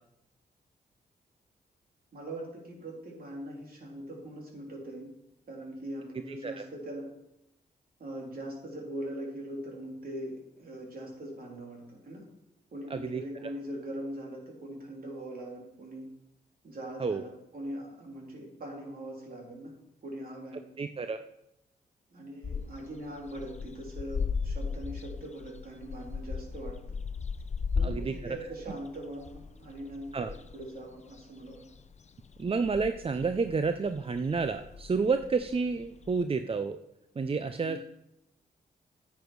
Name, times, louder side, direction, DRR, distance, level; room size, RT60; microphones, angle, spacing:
voice 1, 2.1-5.1 5.5-7.1 8.0-12.3 12.7-16.1 16.6-19.7 20.0-20.6 22.1-27.0 27.7-31.6, right 1 dB, 60° right, -1 dB, 3.6 m, -41 dB
voice 2, 6.3-6.6 12.9-13.2 17.0-17.2 20.8-21.2 27.8-28.1 30.1-30.3 32.4-36.8 37.2-37.8, right 4 dB, 35° right, 9 dB, 0.5 m, -30 dB
sound 1, 22.4-36.2, left 5 dB, 40° left, 0.6 m, -37 dB
10.0 x 8.2 x 4.7 m, 0.86 s
cardioid pair, 60°, 17 cm